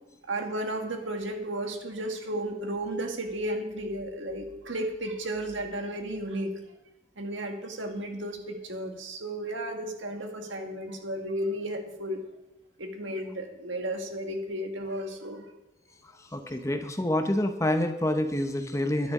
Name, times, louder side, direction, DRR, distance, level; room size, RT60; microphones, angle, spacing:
voice 1, 0.3-6.6 7.2-12.3 12.8-15.5, right 1 dB, 80° right, 4 dB, 1.8 m, -33 dB
voice 2, 16.3-19.1, left 1 dB, 15° left, 7 dB, 0.8 m, -27 dB
11.0 x 10.5 x 4.9 m, 0.97 s
head